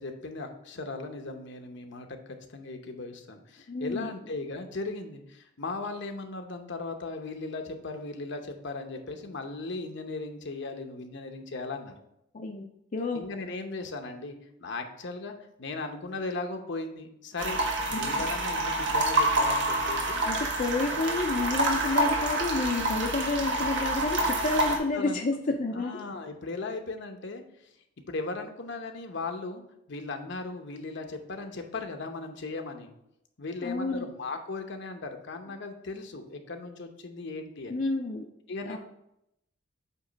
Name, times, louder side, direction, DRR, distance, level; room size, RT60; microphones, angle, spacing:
voice 1, 0.0-11.9 13.1-17.6 17.9-20.2 24.9-25.2 25.5-27.7 28.1-29.6 29.9-32.9 33.4-37.8 38.5-38.8, left 3 dB, 65° left, 5 dB, 0.9 m, -37 dB
voice 2, 3.7-4.1 12.3-12.6 12.9-13.2 17.9-18.2 20.3-26.0 33.6-34.0 37.7-38.3 38.6-38.8, left 3 dB, 45° left, 1 dB, 0.6 m, -30 dB
sound 1, 17.4-24.8, right 1 dB, 65° right, 1.3 m, -27 dB
8.2 x 3.1 x 5.1 m, 0.80 s
head